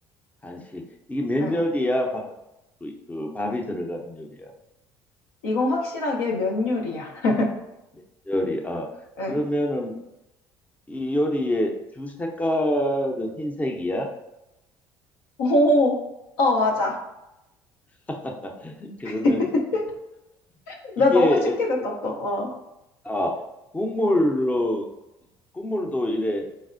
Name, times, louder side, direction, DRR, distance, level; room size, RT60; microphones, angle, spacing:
voice 1, 0.4-0.8 1.1-2.3 2.8-4.5 7.9-8.9 9.3-9.9 10.9-14.1 18.1-19.4 21.0-21.6 23.0-23.4 23.7-24.8 25.5-26.4, left 1 dB, 15° left, 2 dB, 0.5 m, -26 dB
voice 2, 5.4-7.5 9.2-9.4 15.4-16.0 16.4-17.0 19.0-19.8 20.7-22.5, left 2 dB, 80° left, 0 dB, 0.6 m, -23 dB
4.1 x 2.1 x 2.5 m, 0.91 s
hypercardioid pair, 65°, 11 cm